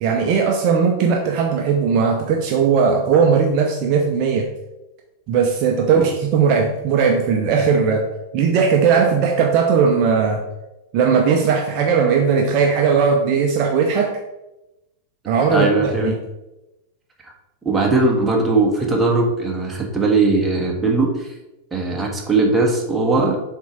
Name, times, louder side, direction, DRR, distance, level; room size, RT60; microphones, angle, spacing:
voice 1, 0.0-4.5 5.3-8.0 8.3-10.4 10.9-14.1 15.3-16.1, right 6 dB, 40° right, 2 dB, 0.7 m, -18 dB
voice 2, 15.5-16.1 17.6-21.3 21.7-23.4, right 3 dB, 10° right, 0 dB, 1.4 m, -19 dB
7.1 x 3.8 x 4.6 m, 0.98 s
figure-of-eight pair, 90°, 0 cm